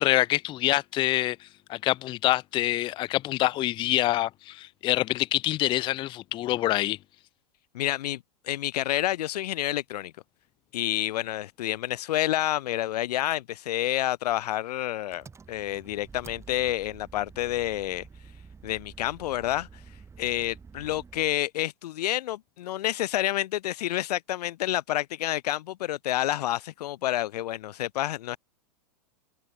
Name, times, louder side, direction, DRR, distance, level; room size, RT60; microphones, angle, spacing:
voice 1, 0.0-7.0, left 16 dB, 25° left, 0.5 m, -26 dB
voice 2, 7.7-10.1 10.7-18.1 18.6-19.7 20.2-28.4, left 14 dB, 70° left, 0.8 m, -29 dB
Engine, 15.1-21.4, right 5 dB, 15° right, 3.7 m, -49 dB
hypercardioid pair, 130°, 21 cm